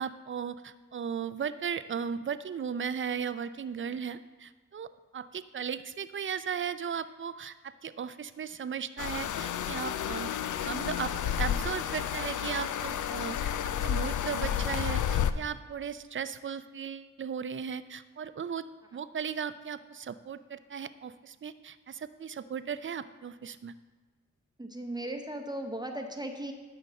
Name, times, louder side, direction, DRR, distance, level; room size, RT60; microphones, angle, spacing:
voice 1, 0.0-10.3 10.6-13.5 13.8-18.7 18.9-23.7, right 7 dB, 40° right, 13 dB, 0.5 m, -36 dB
sound 1, 9.0-15.3, left 9 dB, 65° left, 0.5 m, -31 dB
voice 2, 24.6-26.5, right 1 dB, 15° right, 4 dB, 0.8 m, -37 dB
12.0 x 5.2 x 4.2 m, 1.3 s
cardioid pair, 55°, 33 cm